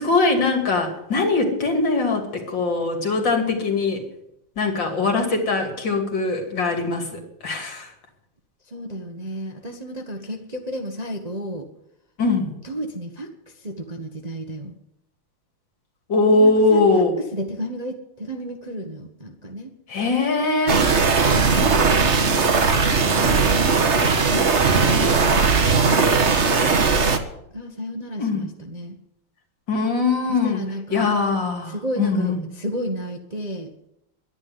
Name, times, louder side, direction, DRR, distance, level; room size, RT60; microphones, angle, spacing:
voice 1, 0.0-4.0 4.6-7.9 12.2-12.5 16.1-17.2 19.9-20.9 28.2-28.4 29.7-30.6 30.9-32.4, left 3 dB, 60° left, 3 dB, 3.3 m, -21 dB
voice 2, 8.7-11.7 12.6-13.3 13.6-14.7 16.3-17.0 17.3-19.7 21.2-21.9 24.2-24.6 27.5-29.0 30.3-31.1 31.7-33.7, equal, 25° right, 3 dB, 1.1 m, -32 dB
sound 1, 20.7-27.2, right 4 dB, 40° right, 1.3 m, -18 dB
12.0 x 10.5 x 9.7 m, 0.81 s
omnidirectional pair, 2.3 m